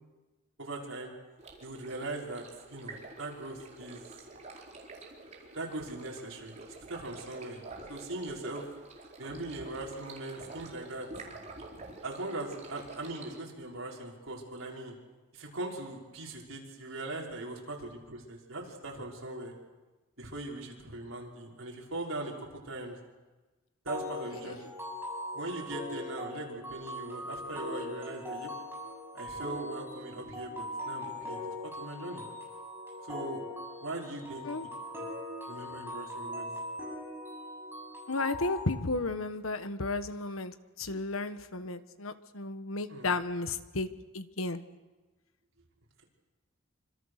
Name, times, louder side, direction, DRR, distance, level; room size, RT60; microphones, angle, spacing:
voice 1, 0.6-1.1 1.6-2.4 2.7-4.0 5.6-6.6 6.9-7.6 7.9-8.7 9.2-11.1 12.0-14.9 15.3-19.5 20.2-23.0 23.8-24.6 25.3-28.5 29.1-32.2 33.0-33.5 33.8-34.5 35.0-35.1 35.5-36.5 42.9-43.1, right 2 dB, 75° right, -2 dB, 5.6 m, -40 dB
Stream, 1.4-13.4, right 3 dB, 35° right, 4.5 m, -48 dB
sound 1, 23.9-38.6, left 1 dB, 10° right, 7.0 m, -40 dB
voice 2, 38.1-43.9 44.1-44.6, left 3 dB, 85° left, 11 dB, 1.3 m, -33 dB
26.5 x 26.0 x 6.6 m, 1.2 s
head